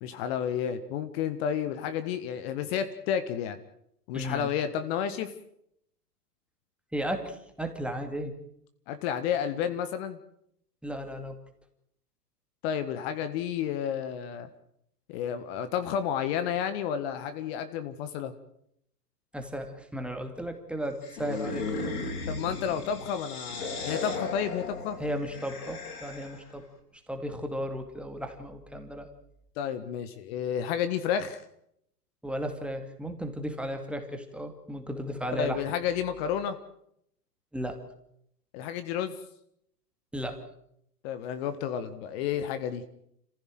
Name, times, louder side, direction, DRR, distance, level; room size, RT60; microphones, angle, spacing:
voice 1, 0.0-3.6 4.1-5.3 8.9-10.2 12.6-14.5 15.1-18.3 22.3-25.0 29.6-31.4 35.3-36.6 38.5-39.1 41.0-42.8, left 8 dB, 40° left, 10 dB, 1.7 m, -31 dB
voice 2, 4.1-4.5 6.9-8.4 10.8-11.4 19.3-22.0 25.0-26.7 27.1-29.1 32.2-35.6 37.5-37.8 40.1-40.4, equal, ahead, 5 dB, 2.4 m, -35 dB
sound 1, 21.0-26.5, left 3 dB, 65° left, 7.2 m, -36 dB
27.0 x 15.5 x 7.8 m, 0.73 s
hypercardioid pair, 115°, 47 cm